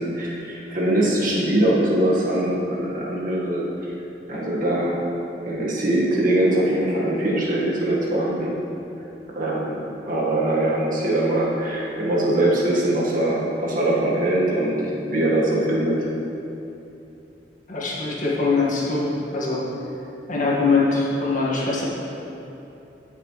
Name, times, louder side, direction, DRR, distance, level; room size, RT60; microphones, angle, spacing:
voice 1, 0.0-3.6 4.3-5.0 5.5-8.5 9.4-14.8 15.1-16.1, right 1 dB, 50° right, -5 dB, 1.7 m, -22 dB
voice 2, 17.7-19.6 20.3-21.8, left 3 dB, 50° left, -5 dB, 1.9 m, -22 dB
16.5 x 6.0 x 3.3 m, 3.0 s
head